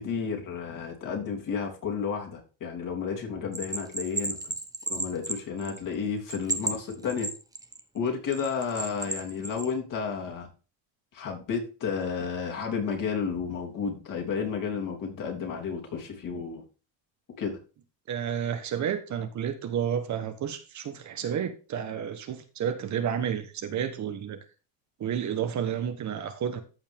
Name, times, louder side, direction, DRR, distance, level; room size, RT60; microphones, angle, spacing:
voice 1, 0.0-4.5 4.9-7.3 7.9-10.5 11.1-16.6 17.4-17.6, left 6 dB, 45° left, 1 dB, 3.3 m, -32 dB
Bell, 3.5-5.9 6.3-7.8 8.3-9.7, right 2 dB, 10° right, 1.0 m, -33 dB
voice 2, 18.1-24.4 25.0-26.6, right 8 dB, 40° right, 8 dB, 1.2 m, -31 dB
14.0 x 5.4 x 3.6 m, 0.33 s
cardioid pair, 140°, 44 cm